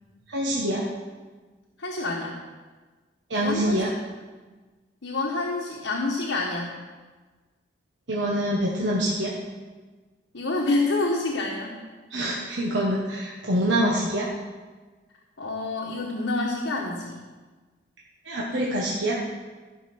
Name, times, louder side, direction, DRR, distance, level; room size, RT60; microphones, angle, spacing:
voice 1, 0.3-0.8 3.3-3.9 8.1-9.3 12.1-14.3 18.2-19.2, right 1 dB, 75° right, -4 dB, 1.3 m, -25 dB
voice 2, 1.8-2.4 3.3-3.8 5.0-6.8 10.3-11.8 15.4-17.2, left 2 dB, 90° left, -2 dB, 1.3 m, -27 dB
13.5 x 5.4 x 6.2 m, 1.3 s
head